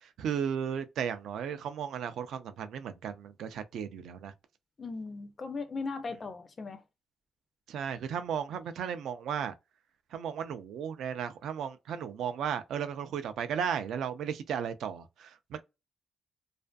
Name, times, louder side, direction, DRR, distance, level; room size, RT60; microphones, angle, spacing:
voice 1, 0.0-4.3 7.7-9.5 10.1-15.6, right 8 dB, 80° right, 0.4 m, -35 dB
voice 2, 4.8-6.8, left 4 dB, 35° left, 0.3 m, -38 dB
2.5 x 2.4 x 2.2 m
cardioid pair, 120°, 0 cm